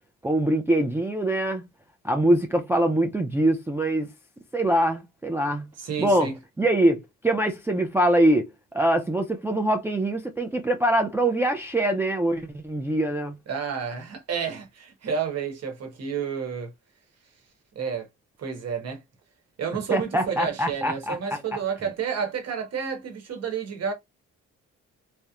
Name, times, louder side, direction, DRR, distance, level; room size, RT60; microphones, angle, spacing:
voice 1, 0.2-1.7 2.0-4.1 4.5-5.7 6.0-6.3 6.6-13.4 19.9-21.4, right 1 dB, 10° right, 0.3 m, -23 dB
voice 2, 5.8-6.3 13.5-16.7 17.7-18.1 18.4-19.0 19.6-23.9, right 6 dB, 55° right, 1.0 m, -30 dB
2.8 x 2.0 x 2.3 m
cardioid pair, 90°, 30 cm